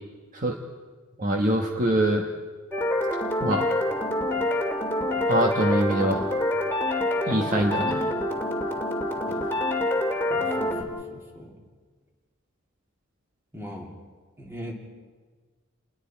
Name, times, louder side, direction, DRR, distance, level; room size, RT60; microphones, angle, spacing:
voice 1, 1.2-2.2 3.4-3.7 4.5-4.6 5.3-6.2 7.3-8.1 9.3-9.4, right 1 dB, 40° right, 2 dB, 1.3 m, -24 dB
sound 1, 2.7-10.8, left 1 dB, 10° left, 2.3 m, -26 dB
voice 2, 10.3-11.5 13.5-13.9 14.4-14.7, equal, 10° right, 0 dB, 3.0 m, -40 dB
29.0 x 21.0 x 4.5 m, 1.4 s
head